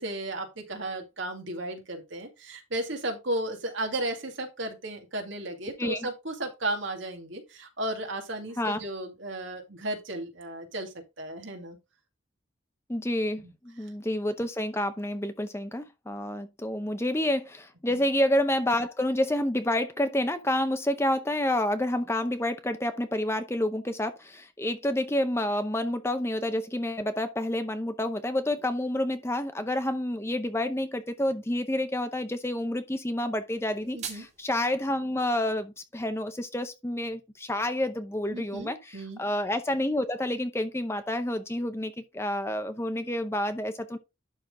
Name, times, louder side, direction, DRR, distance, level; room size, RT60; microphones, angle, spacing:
voice 1, 0.0-11.8 13.4-13.5 17.9-18.0 33.9-34.3 38.3-39.2, right 1 dB, 70° right, 2.3 m, -34 dB
voice 2, 12.9-44.0, left 1 dB, 15° left, 0.6 m, -29 dB
sound 1, 33.6-34.6, right 7 dB, 35° right, 1.9 m, -41 dB
11.5 x 3.9 x 3.8 m
head